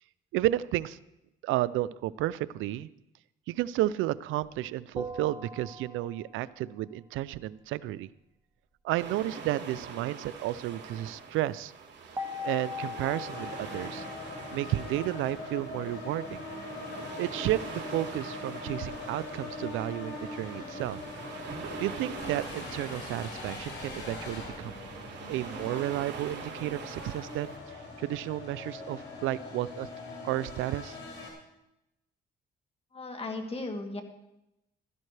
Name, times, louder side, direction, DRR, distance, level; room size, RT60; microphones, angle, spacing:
voice 1, 0.3-1.0 1.4-2.9 3.5-8.1 8.8-11.7 12.4-14.1 14.5-16.5 17.2-21.0 21.8-24.8 25.3-29.9 30.2-31.0, right 15 dB, 90° right, 18 dB, 0.4 m, -32 dB
sound 1, 4.9-6.5 12.2-15.5, left 3 dB, 20° right, 1.6 m, -40 dB
sound 2, 9.0-27.6, right 5 dB, 60° right, 2.4 m, -44 dB
sound 3, 13.3-31.3, left 3 dB, 65° left, 5.4 m, -41 dB
voice 2, 32.9-34.0, left 2 dB, 30° left, 4 dB, 2.0 m, -36 dB
15.0 x 13.0 x 3.3 m, 0.90 s
cardioid pair, 90°, 20 cm